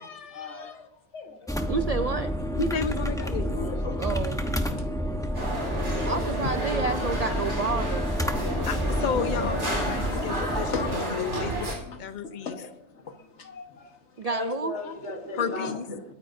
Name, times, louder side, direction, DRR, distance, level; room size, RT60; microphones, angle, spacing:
voice 1, 0.0-0.9 1.1-1.7 3.3-4.2 4.7-4.9 9.8-10.9 11.3-13.9 14.3-16.1, left 3 dB, 75° left, 1.7 m, -38 dB
sound 1, 1.5-11.0, equal, 5° left, 0.8 m, -29 dB
voice 2, 1.7-2.3 4.0-4.4 6.0-8.1 14.2-14.7, right 4 dB, 55° right, 0.4 m, -29 dB
voice 3, 2.6-3.5 6.4-6.5 8.7-12.5 15.3-15.9, left 5 dB, 45° left, 0.8 m, -32 dB
sound 2, 5.3-11.7, equal, 85° right, 4.2 m, -31 dB
22.0 x 9.6 x 2.7 m
omnidirectional pair, 1.2 m